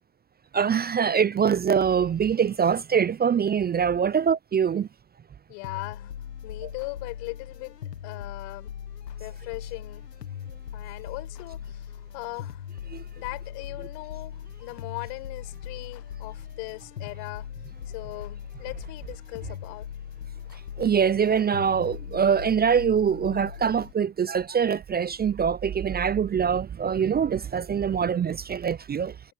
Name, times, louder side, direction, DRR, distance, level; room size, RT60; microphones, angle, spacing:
voice 1, 0.5-4.9 12.9-13.0 20.8-29.1, right 7 dB, 20° right, 0.5 m, -24 dB
voice 2, 5.5-6.1 6.4-7.8 8.0-8.7 9.2-10.1 10.7-12.6 13.2-17.5 17.9-19.9, left 40 dB or more, 70° left, 7.6 m, -39 dB
sound 1, 5.6-23.9, left 9 dB, 90° left, 1.6 m, -40 dB
hypercardioid pair, 65°, 48 cm